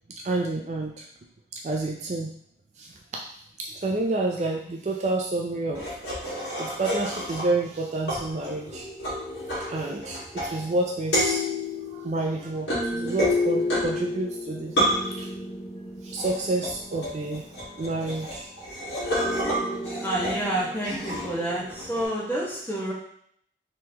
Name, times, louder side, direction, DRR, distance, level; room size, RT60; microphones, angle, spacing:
voice 1, 0.2-1.1 1.5-2.3 2.8-3.2 3.6-5.9 6.6-8.9 9.7-11.5 11.9-14.8 15.0-15.3 16.0-18.5, right 2 dB, 40° right, 0 dB, 0.4 m, -29 dB
sound 1, 5.7-7.7 8.1-10.8 11.1-22.1, left 1 dB, 85° left, 1.6 m, -30 dB
voice 2, 20.0-22.9, right 1 dB, 10° left, -6 dB, 1.0 m, -29 dB
3.7 x 3.1 x 2.8 m, 0.66 s
head